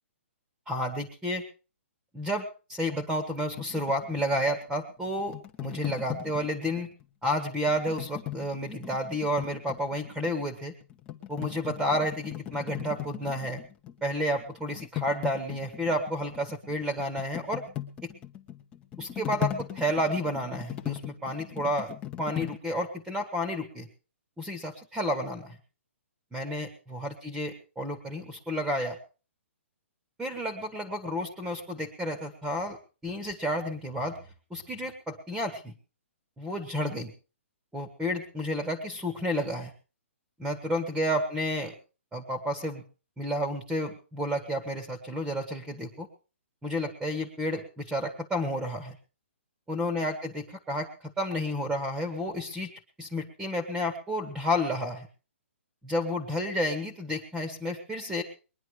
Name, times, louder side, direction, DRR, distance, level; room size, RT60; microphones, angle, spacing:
voice 1, 0.7-1.4 2.1-5.4 5.6-6.9 7.2-10.7 11.3-13.6 14.0-17.6 19.0-21.9 22.2-23.9 24.4-25.6 26.3-29.0 30.2-32.8 33.0-34.2 34.5-35.7 36.4-37.1 37.7-39.7 40.4-41.7 42.1-42.8 43.2-46.1 46.6-49.0 49.7-52.7 53.0-55.1 55.8-58.2, equal, 5° right, 10 dB, 1.4 m, -31 dB
sound 1, 3.5-7.0 7.7-10.4 10.8-14.1 14.3-22.6, left 12 dB, 15° left, 1.0 m, -38 dB
21.0 x 10.5 x 4.9 m, 0.35 s
hypercardioid pair, 170°, 7 cm